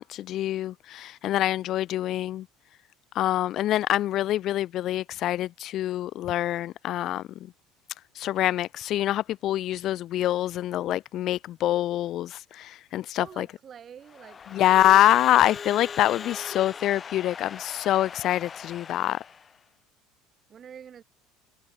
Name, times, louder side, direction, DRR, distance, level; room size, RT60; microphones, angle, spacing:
voice 1, 0.0-2.5 3.1-7.2 8.2-13.5 14.5-19.2, left 13 dB, 50° left, 0.6 m, -25 dB
voice 2, 13.2-15.0 20.5-21.0, right 8 dB, 30° right, 3.6 m, -46 dB
Crowd / Alarm, 14.0-19.6, left 6 dB, 25° left, 2.9 m, -40 dB
cardioid pair, 130°, 0 cm